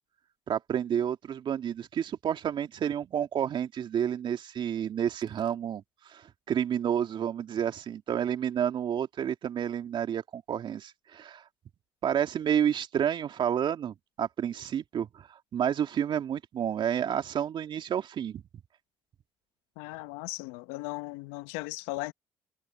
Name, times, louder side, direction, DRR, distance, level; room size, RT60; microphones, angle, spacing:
voice 1, 0.5-11.4 12.0-18.4, right 9 dB, 60° right, 2.4 m, -30 dB
voice 2, 19.8-22.1, left 21 dB, 85° left, 1.2 m, -37 dB
hypercardioid pair, 55°, 9 cm